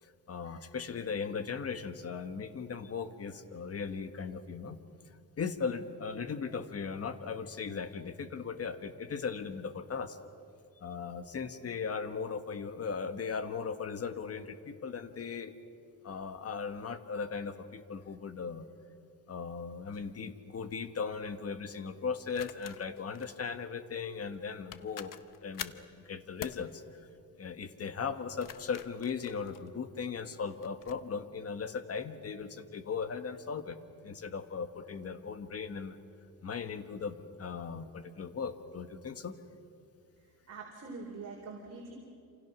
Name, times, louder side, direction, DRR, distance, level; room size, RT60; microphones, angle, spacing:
voice 1, 0.0-4.8 5.4-10.2 10.8-15.5 16.0-18.7 19.3-25.1 25.4-26.8 27.4-33.8 34.0-36.0 36.4-39.3, left 5 dB, 40° left, 10 dB, 1.5 m, -38 dB
sound 1, 19.9-20.1 22.3-23.3 24.3-24.4 24.7-25.9 26.4-26.7 28.2-30.0 30.6-31.0, left 10 dB, 60° left, 1.0 m, -46 dB
voice 2, 40.2-41.9, right 4 dB, 45° right, -2 dB, 4.2 m, -45 dB
28.0 x 28.0 x 6.2 m, 2.4 s
cardioid pair, 130°, 36 cm